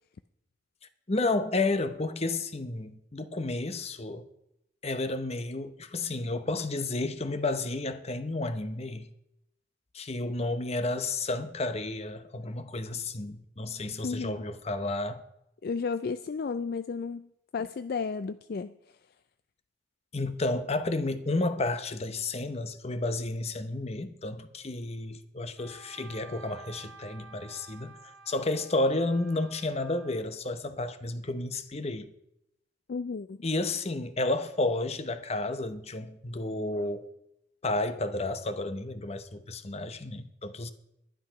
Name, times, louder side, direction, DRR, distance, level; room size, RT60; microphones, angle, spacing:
voice 1, 1.1-4.2 4.8-9.1 9.9-15.2 20.1-28.0 28.3-32.1 33.4-37.1 37.6-40.7, left 2 dB, 30° left, 0.8 m, -31 dB
voice 2, 14.0-14.4 15.6-17.3 17.5-18.8 32.9-33.4, left 5 dB, 50° left, 0.4 m, -33 dB
Wind instrument woodwind instrument, 25.6-30.2, right 4 dB, 5° left, 1.8 m, -51 dB
11.5 x 10.5 x 5.8 m
head